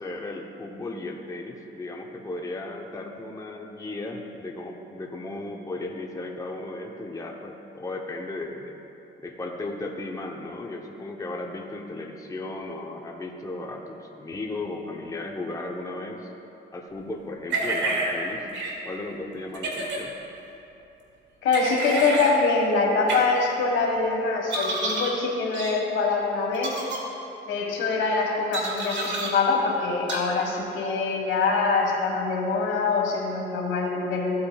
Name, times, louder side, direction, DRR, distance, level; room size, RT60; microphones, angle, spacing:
voice 1, 0.0-8.8 9.2-16.3 16.7-18.5 18.8-20.1, left 2 dB, 15° left, 1 dB, 0.8 m, -35 dB
sound 1, 17.5-18.1 18.5-18.7 19.5-20.0 21.5-22.3 23.1-23.2 24.5-25.1 25.5-25.7 26.5-27.0 28.5-29.3 30.1-30.2, right 2 dB, 65° right, 1.6 m, -28 dB
voice 2, 21.4-26.7 27.5-34.3, left 4 dB, 75° left, -1 dB, 1.6 m, -24 dB
14.5 x 8.5 x 2.3 m, 2.9 s
cardioid pair, 90°, 20 cm